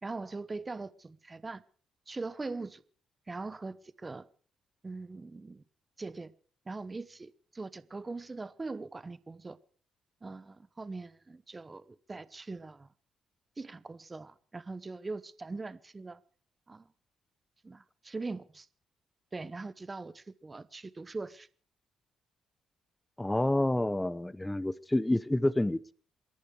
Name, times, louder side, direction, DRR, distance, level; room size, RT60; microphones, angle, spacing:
voice 1, 0.0-1.6 2.1-2.8 3.3-4.3 4.8-5.6 6.0-6.3 6.7-9.6 10.2-12.9 13.6-16.2 16.7-16.9 17.6-18.7 19.3-21.5, right 3 dB, 25° right, 1.0 m, -41 dB
voice 2, 23.2-25.9, left 1 dB, 10° left, 0.7 m, -28 dB
28.0 x 11.0 x 4.8 m
cardioid pair, 90°, 0 cm